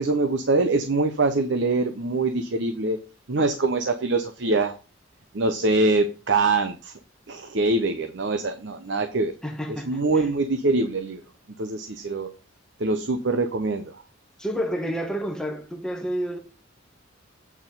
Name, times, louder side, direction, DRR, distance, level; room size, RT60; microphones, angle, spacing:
voice 1, 0.0-3.0 3.3-4.7 5.3-6.9 7.3-9.3 9.9-11.2 11.6-12.3 12.8-14.0, right 3 dB, 60° right, 0.9 m, -24 dB
voice 2, 9.4-10.3 14.4-16.4, equal, 5° left, 1.3 m, -30 dB
8.5 x 4.5 x 5.5 m
head